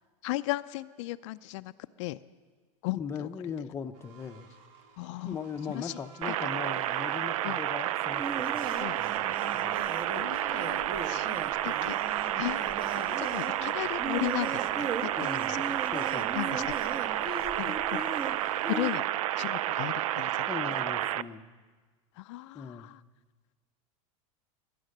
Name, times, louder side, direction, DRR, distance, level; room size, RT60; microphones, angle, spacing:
voice 1, 0.2-1.7 2.0-2.2 2.8-3.3 5.0-5.4 5.7-6.0 6.3-6.4 7.4-7.6 8.8-9.0 10.1-12.0 12.3-15.1 15.5-15.8 16.3-16.7 17.2-18.1 18.7-19.0 19.4-20.5 22.2-23.0, left 18 dB, 60° left, 11 dB, 0.4 m, -36 dB
voice 2, 2.9-4.5 5.2-8.7 9.0-9.1 9.5-9.8 15.2-15.6 15.9-16.4 20.5-21.4 22.5-22.9, left 6 dB, 15° left, 6 dB, 0.6 m, -39 dB
sound 1, 3.9-18.9, right 5 dB, 70° right, 2.0 m, -57 dB
sound 2, 6.2-21.2, right 13 dB, 85° right, 0.5 m, -31 dB
sound 3, 8.1-18.9, right 4 dB, 25° right, 1.1 m, -39 dB
21.0 x 9.9 x 6.6 m, 1.4 s
supercardioid pair, 145°, 17 cm